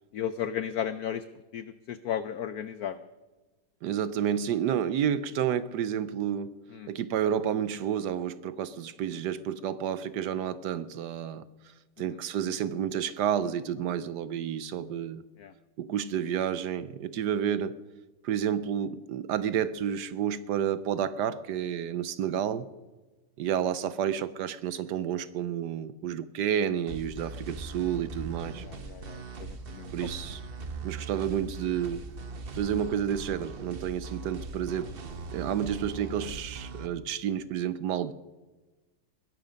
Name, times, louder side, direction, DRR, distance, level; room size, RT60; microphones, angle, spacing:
voice 1, 0.1-1.2 1.5-3.0 6.7-6.9 15.4-15.5 28.6-29.9, left 9 dB, 85° left, 14 dB, 0.8 m, -34 dB
voice 2, 3.8-6.5 6.9-15.2 15.8-17.8 18.2-22.7 23.4-28.6 29.9-30.4 30.8-32.0 32.5-34.9 35.3-38.1, right 9 dB, 70° right, 15 dB, 1.0 m, -30 dB
sound 1, 26.9-36.9, right 3 dB, 45° right, 0.7 m, -40 dB
21.0 x 11.0 x 5.1 m, 1.2 s
omnidirectional pair, 2.3 m